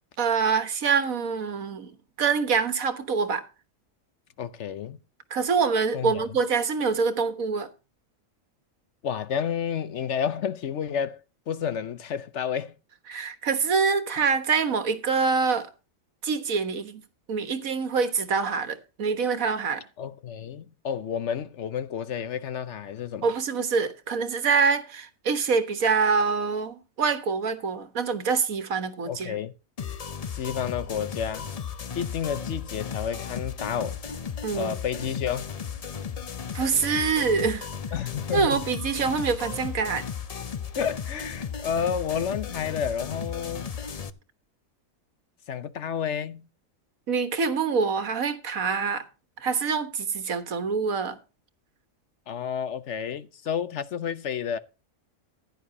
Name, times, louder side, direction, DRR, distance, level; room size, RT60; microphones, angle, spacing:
voice 1, 0.2-1.9 2.2-3.4 5.3-7.7 13.1-15.7 16.2-17.0 17.3-19.8 23.2-29.4 34.4-34.7 36.5-37.7 38.3-40.1 47.1-49.1 49.4-51.2, right 5 dB, 80° right, 1.7 m, -25 dB
voice 2, 4.4-5.0 5.9-6.3 9.0-11.2 11.5-12.7 20.0-23.3 29.1-29.5 30.3-31.5 31.9-34.0 34.5-35.6 37.9-38.6 40.8-43.7 45.5-46.5 52.3-54.6, left 8 dB, 60° left, 1.0 m, -30 dB
sound 1, 29.8-44.1, left 7 dB, 40° left, 0.5 m, -35 dB
15.5 x 10.5 x 2.8 m
omnidirectional pair, 1.4 m